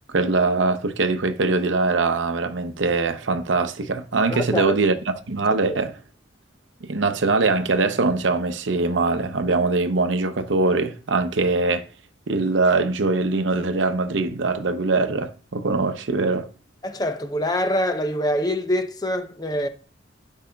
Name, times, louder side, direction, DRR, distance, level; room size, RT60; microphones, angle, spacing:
voice 1, 0.1-5.9 6.9-11.8 12.3-16.5, right 3 dB, 80° right, 0.7 m, -22 dB
voice 2, 4.3-4.7 5.5-5.8 16.8-19.7, left 1 dB, 20° left, 0.6 m, -25 dB
12.0 x 5.5 x 2.3 m
head